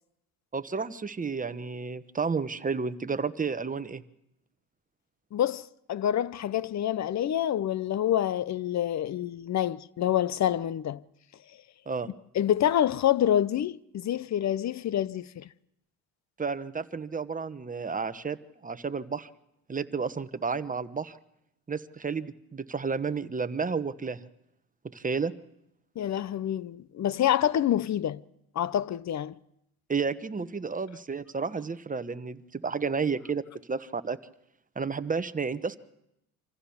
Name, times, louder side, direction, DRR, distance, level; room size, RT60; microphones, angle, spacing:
voice 1, 0.5-4.0 11.9-12.1 16.4-18.4 18.6-19.3 19.7-21.2 21.7-24.2 24.9-25.3 29.9-33.4 33.7-34.2 34.7-35.8, right 5 dB, 20° right, 1.1 m, -31 dB
voice 2, 5.3-11.0 12.3-15.5 26.0-28.2 28.5-29.3, left 11 dB, 45° left, 0.7 m, -27 dB
25.5 x 15.5 x 7.2 m
supercardioid pair, 70°, 39 cm